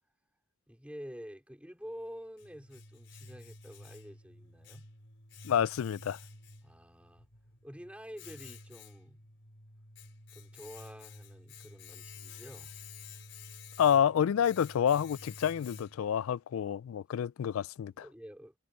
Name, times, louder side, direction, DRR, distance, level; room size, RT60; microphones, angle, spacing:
voice 1, 0.7-4.9 6.6-7.2 7.6-9.3 10.3-12.7 17.9-18.5, equal, 5° right, 4.5 m, -48 dB
Domestic sounds home sounds, 1.8-16.2, left 4 dB, 60° left, 6.0 m, -51 dB
voice 2, 5.4-6.2 13.8-17.9, left 8 dB, 90° left, 0.3 m, -28 dB
head